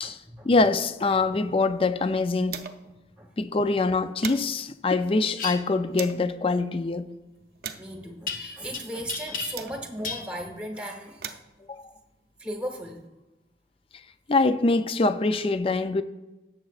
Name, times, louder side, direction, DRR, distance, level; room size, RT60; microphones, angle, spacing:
voice 1, 0.4-2.6 3.4-7.1 11.7-11.8 14.3-16.0, left 3 dB, 30° left, 0.4 m, -24 dB
sound 1, 1.2-3.0 3.3-3.4 3.8-6.3 6.9-10.2 10.9-13.1, right 8 dB, 55° right, 0.6 m, -43 dB
sound 2, 5.3-5.6 8.3-8.8 9.1-9.8 10.0-10.3, left 5 dB, 50° left, 0.9 m, -33 dB
voice 2, 7.8-11.4 12.4-13.1, right 1 dB, 5° right, 1.1 m, -36 dB
17.0 x 7.5 x 2.4 m
head